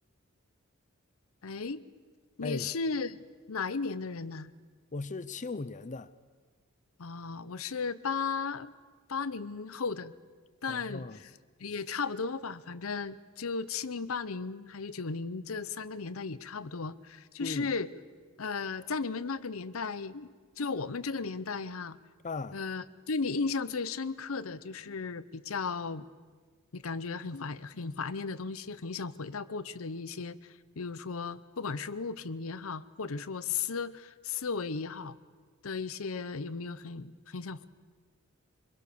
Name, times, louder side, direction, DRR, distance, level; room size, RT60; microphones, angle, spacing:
voice 1, 1.4-1.8 2.4-3.2 3.5-4.5 7.0-8.7 9.1-10.1 10.6-11.3 11.6-17.9 18.4-22.0 22.5-26.1 26.7-35.2 35.6-37.7, left 4 dB, 80° left, 0.8 m, -35 dB
voice 2, 4.9-6.1 10.7-11.2 17.4-17.7 22.2-22.6, left 3 dB, 35° left, 0.6 m, -37 dB
25.5 x 22.0 x 6.9 m
head